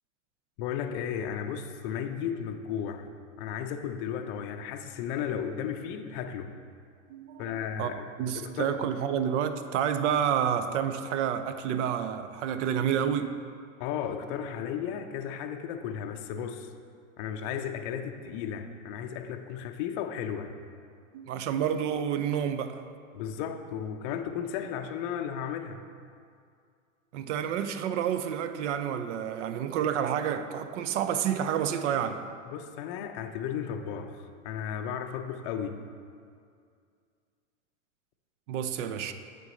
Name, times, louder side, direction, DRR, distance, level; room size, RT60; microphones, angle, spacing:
voice 1, 0.6-3.1 3.4-6.5 7.4-8.1 8.3-9.0 13.8-16.7 17.2-20.5 23.1-25.9 32.5-35.9, left 8 dB, 40° left, 7 dB, 0.5 m, -34 dB
voice 2, 7.1-7.4 7.8-7.9 8.2-13.3 21.1-22.8 27.1-32.3 38.5-39.1, right 8 dB, 65° right, 10 dB, 0.6 m, -29 dB
9.3 x 3.9 x 3.9 m, 2.3 s
hypercardioid pair, 120°, 40 cm